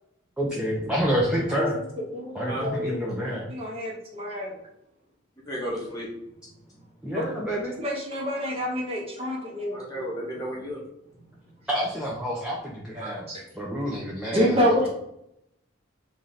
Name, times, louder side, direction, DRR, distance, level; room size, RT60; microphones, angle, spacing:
voice 1, 0.4-1.8 2.3-3.5 7.0-7.8 11.7-13.3 13.6-14.9, equal, 5° right, -5 dB, 0.5 m, -28 dB
voice 2, 2.1-2.9 3.5-4.5 7.1-7.2 7.8-10.0 13.0-13.4 14.3-14.9, equal, 30° right, -3 dB, 0.8 m, -27 dB
voice 3, 5.4-7.1 9.7-11.7, equal, 20° left, -4 dB, 1.1 m, -35 dB
3.1 x 2.7 x 3.9 m, 0.80 s
head